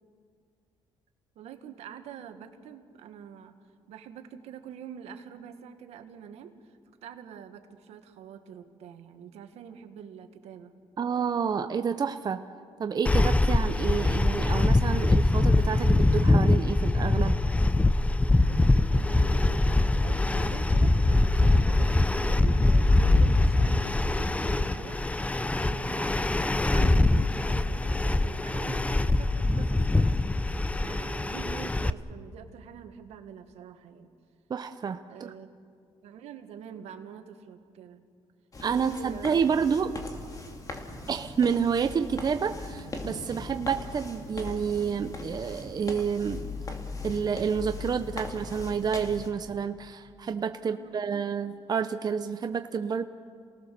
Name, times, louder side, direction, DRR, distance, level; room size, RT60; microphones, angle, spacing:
voice 1, 1.3-3.5 3.9-10.7 18.4-30.2 30.8-34.1 35.1-35.5 36.0-38.0 38.6-39.7 50.6-51.3, right 8 dB, 85° right, 7 dB, 1.7 m, -45 dB
voice 2, 11.0-12.4 12.8-17.4 34.5-35.3 38.6-39.9 41.1-46.5 47.0-53.0, right 6 dB, 40° right, 8 dB, 0.8 m, -29 dB
sound 1, 13.1-31.9, left 2 dB, 10° left, 0.6 m, -23 dB
sound 2, 38.5-49.3, left 3 dB, 35° left, 2.8 m, -39 dB
28.5 x 19.0 x 6.8 m, 2.2 s
cardioid pair, 95°, 11 cm